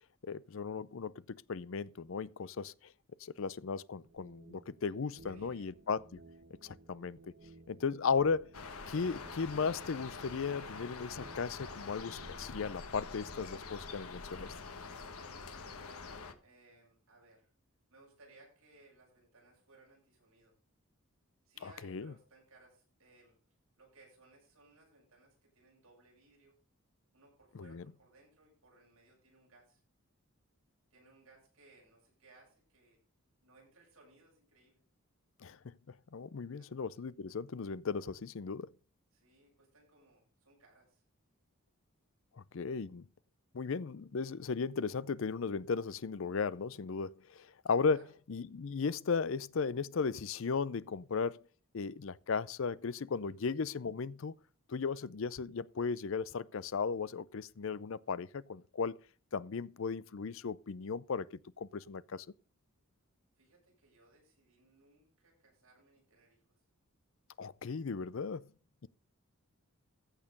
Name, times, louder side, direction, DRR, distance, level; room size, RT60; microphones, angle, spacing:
voice 1, 0.2-2.9 3.2-6.0 6.6-7.2 7.7-8.5 8.9-14.5 21.6-22.1 27.5-27.9 35.4-38.7 42.4-43.1 43.5-48.0 48.3-51.4 51.7-54.3 54.7-59.0 59.3-62.3 67.4-68.5, left 5 dB, 65° left, 0.5 m, -36 dB
sound 1, 4.0-13.4, right 2 dB, 60° right, 1.5 m, -57 dB
voice 2, 5.0-5.7 15.7-16.1 16.4-17.5 17.9-20.5 21.4-23.4 23.8-26.6 27.1-29.8 30.9-33.0 33.4-34.8 36.5-36.7 39.1-41.0 47.9-48.2 53.3-53.4 63.4-66.5, right 2 dB, 75° right, 7.9 m, -63 dB
sound 2, 8.5-16.3, left 4 dB, 80° left, 1.5 m, -46 dB
14.5 x 6.6 x 5.2 m
head